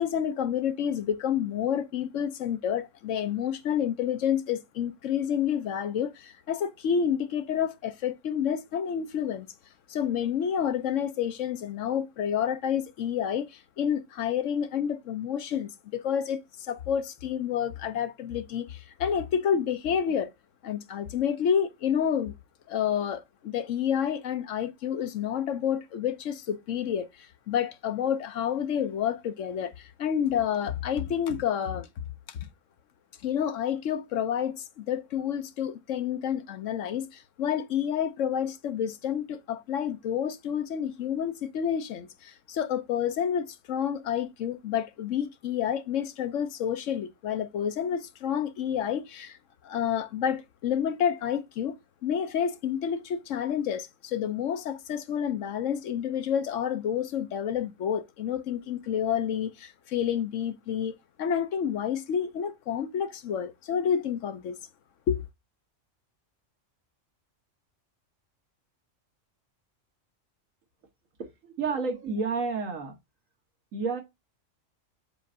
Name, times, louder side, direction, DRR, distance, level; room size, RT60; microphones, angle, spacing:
voice 1, 0.0-9.5 9.9-20.3 20.6-22.3 22.7-31.9 32.3-32.5 33.2-49.4 49.6-64.6 65.1-65.2, left 8 dB, 75° left, 1.1 m, -29 dB
voice 2, 71.2-73.0 73.7-74.0, right 4 dB, 85° right, 1.7 m, -30 dB
7.5 x 2.5 x 5.3 m
omnidirectional pair, 1.3 m